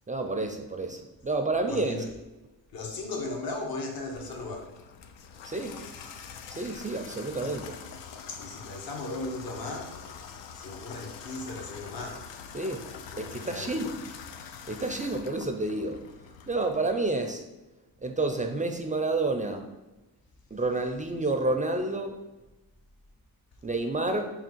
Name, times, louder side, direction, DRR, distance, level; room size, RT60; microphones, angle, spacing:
voice 1, 0.1-2.0 5.4-5.8 6.5-7.7 12.5-12.8 13.2-13.9 14.7-16.0 16.5-17.4 18.0-19.7 20.5-22.2 23.6-24.3, right 2 dB, 20° right, 4 dB, 0.4 m, -29 dB
voice 2, 1.7-2.1 2.7-4.8 7.4-7.7 8.3-10.0 10.6-12.3 13.1-13.8, left 2 dB, 55° left, 1 dB, 0.9 m, -37 dB
Water tap faucet / Bathtub (filling or washing), 4.1-16.9, left 6 dB, 75° left, 0.5 m, -45 dB
3.5 x 2.3 x 4.4 m, 1.0 s
supercardioid pair, 45°, 44 cm